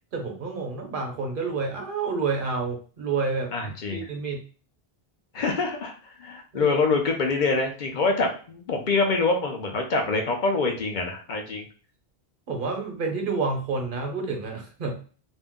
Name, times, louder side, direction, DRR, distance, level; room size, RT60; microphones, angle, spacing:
voice 1, 0.1-4.4 6.5-6.8 12.5-15.1, right 4 dB, 60° right, 2 dB, 0.9 m, -29 dB
voice 2, 3.5-4.0 5.3-5.9 6.2-11.6, left 3 dB, 55° left, 2 dB, 0.8 m, -25 dB
2.6 x 2.0 x 3.5 m, 0.39 s
omnidirectional pair, 1.0 m